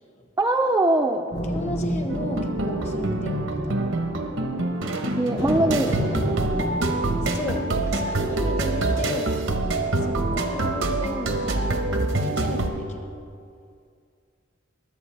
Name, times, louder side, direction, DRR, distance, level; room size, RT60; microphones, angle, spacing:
voice 1, 0.4-1.3 5.2-6.2, right 1 dB, 15° right, 1 dB, 0.4 m, -22 dB
sound 1, 1.3-4.9 5.4-8.7, equal, 75° left, 3.1 m, -32 dB
voice 2, 1.5-3.8 7.2-9.3 10.0-13.1, left 1 dB, 35° left, 4 dB, 1.1 m, -34 dB
sound 2, 2.1-12.7, right 2 dB, 80° right, 1.0 m, -25 dB
22.0 x 8.2 x 3.3 m, 2.3 s
head